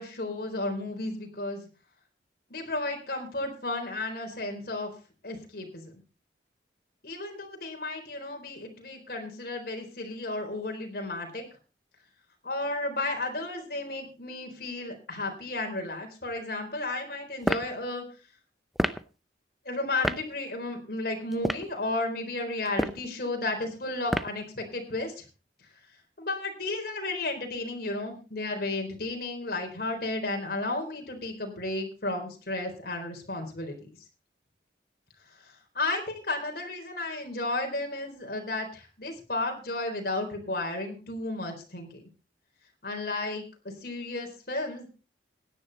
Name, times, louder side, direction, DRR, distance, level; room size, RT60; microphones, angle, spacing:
voice 1, 0.0-1.7 2.5-4.9 5.2-5.9 7.0-11.4 12.4-18.0 19.6-25.3 26.2-33.9 35.4-42.0 42.8-44.9, left 2 dB, 55° left, 3 dB, 4.1 m, -33 dB
sound 1, 17.4-17.7 18.8-19.0 20.0-20.2 21.3-21.7 22.7-23.1 24.1-24.4, equal, ahead, 0.6 m, -28 dB
16.5 x 10.5 x 4.1 m, 0.33 s
head